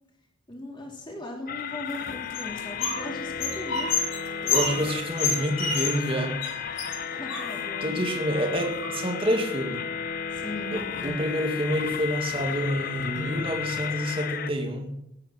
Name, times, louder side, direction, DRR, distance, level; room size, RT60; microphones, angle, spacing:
voice 1, 0.5-4.0 7.1-8.1 10.3-10.7, left 1 dB, 25° left, -1 dB, 3.2 m, -38 dB
sound 1, 1.5-14.5, left 7 dB, 45° left, 0.6 m, -33 dB
sound 2, 1.9-3.0 3.3-6.1 6.4-6.5 6.8-7.9 8.6-9.3 10.4-10.5 10.8-11.2 11.7-12.0 12.3-12.5 13.0-13.8, left 4 dB, 75° left, 4.2 m, -30 dB
voice 2, 4.4-6.4 7.8-9.8 10.7-14.9, equal, 25° right, 2 dB, 2.0 m, -28 dB
19.5 x 9.0 x 5.9 m, 0.80 s
head